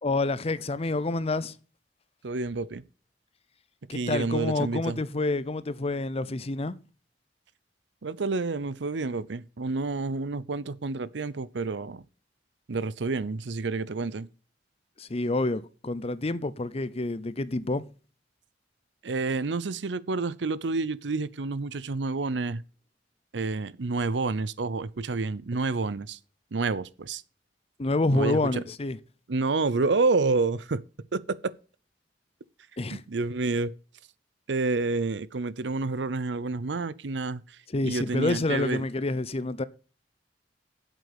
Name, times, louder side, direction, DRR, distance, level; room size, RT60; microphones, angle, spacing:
voice 1, 0.0-1.5 3.9-6.8 15.0-17.8 27.8-29.0 32.8-33.0 37.7-39.6, left 2 dB, 35° left, 0.7 m, -28 dB
voice 2, 2.2-2.8 3.9-5.0 8.0-12.0 12.7-14.3 19.0-22.6 23.3-26.2 26.5-27.2 28.1-28.6 29.3-30.8 31.1-31.5 32.9-33.7 34.5-37.4 37.8-38.9, right 3 dB, 80° right, 0.7 m, -29 dB
8.2 x 7.7 x 6.8 m
head